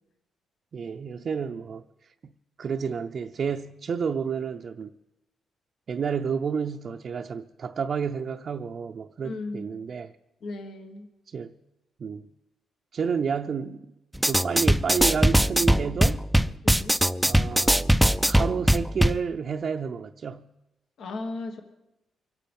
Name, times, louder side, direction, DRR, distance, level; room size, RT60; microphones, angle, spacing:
voice 1, 0.7-1.8 2.6-4.9 5.9-10.1 11.3-11.5 12.0-12.2 12.9-13.9 14.2-16.2 17.2-18.0 18.3-20.5, right 6 dB, 50° right, 0.6 m, -30 dB
voice 2, 9.2-9.8 10.4-11.1 16.6-17.0 21.0-21.6, left 3 dB, 70° left, 1.6 m, -36 dB
sound 1, 14.1-19.2, equal, 5° right, 0.4 m, -21 dB
24.5 x 9.0 x 5.4 m
cardioid pair, 110°, 0 cm